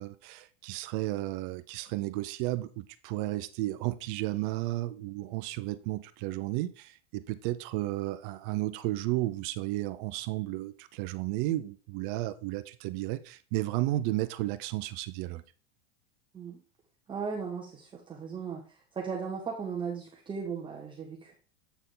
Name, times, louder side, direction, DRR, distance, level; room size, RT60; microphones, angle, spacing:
voice 1, 0.0-15.4, right 17 dB, 50° right, 0.6 m, -33 dB
voice 2, 17.1-18.6 18.9-21.3, right 6 dB, 15° right, 0.9 m, -36 dB
8.1 x 4.5 x 3.7 m
supercardioid pair, 145°, 34 cm